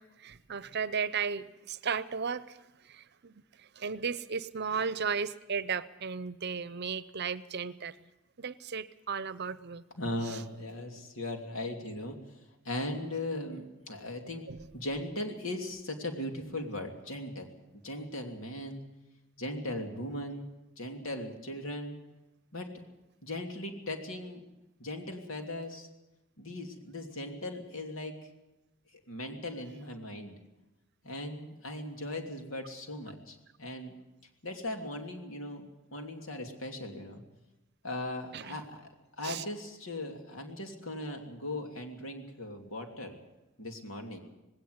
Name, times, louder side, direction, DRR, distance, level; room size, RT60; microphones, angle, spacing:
voice 1, 0.0-8.0 8.4-9.8 10.3-10.4 14.5-14.6 38.3-38.6 39.2-39.4, right 6 dB, 55° right, 16 dB, 0.7 m, -35 dB
voice 2, 10.0-14.4 14.7-17.5 17.8-18.8 19.4-20.5 20.8-22.0 22.5-22.7 23.2-24.4 24.8-25.9 26.4-28.1 29.1-30.4 31.0-33.9 34.4-37.2 37.8-38.9 39.2-43.2 43.6-44.2, left 1 dB, 80° left, 4 dB, 3.0 m, -38 dB
19.0 x 17.5 x 8.2 m, 0.99 s
head